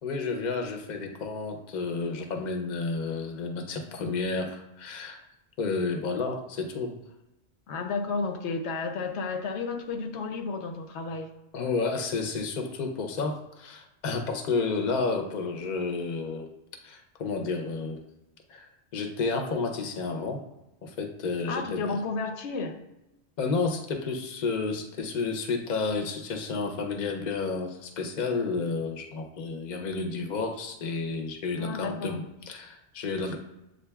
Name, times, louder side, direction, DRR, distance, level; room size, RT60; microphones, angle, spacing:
voice 1, 0.0-5.2 5.6-6.9 11.5-16.5 16.8-18.0 18.5-20.4 20.8-22.0 23.4-33.4, left 4 dB, 50° left, 4 dB, 0.6 m, -31 dB
voice 2, 7.7-11.3 21.5-22.8 31.6-32.2, left 4 dB, 80° left, 5 dB, 0.9 m, -32 dB
7.7 x 2.6 x 2.2 m, 0.93 s
omnidirectional pair, 1.1 m